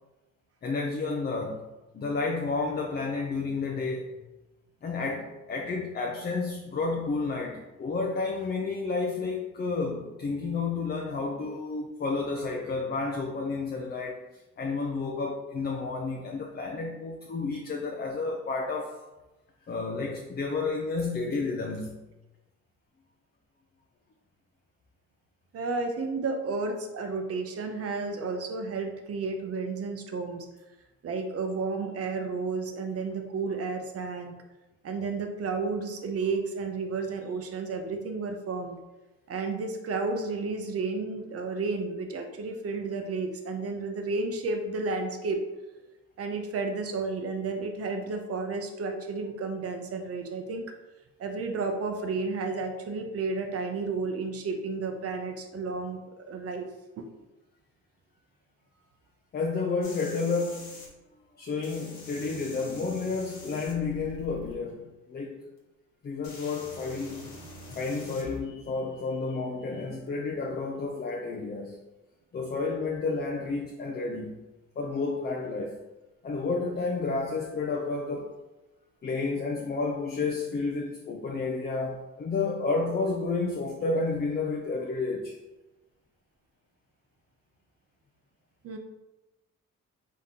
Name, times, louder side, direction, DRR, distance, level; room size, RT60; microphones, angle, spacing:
voice 1, 0.6-1.7 1.9-4.1 4.8-14.2 14.6-18.9 19.7-22.0 59.3-60.9 61.4-65.4 66.0-67.3 67.8-71.8 72.3-74.4 74.8-75.8 76.2-78.3 79.0-85.4, left 3 dB, 35° left, 1 dB, 0.5 m, -31 dB
voice 2, 25.5-30.5 31.0-34.4 34.8-38.8 39.3-45.4 46.2-50.7 51.2-56.7 57.0-57.1 88.6-88.8, right 4 dB, 50° right, 5 dB, 0.7 m, -32 dB
sound 1, 59.8-60.9 61.6-64.5 65.6-65.7 66.2-68.4 70.1-70.2, left 2 dB, 75° left, 1.3 m, -45 dB
3.6 x 3.6 x 2.8 m, 1.1 s
cardioid pair, 90°, 30 cm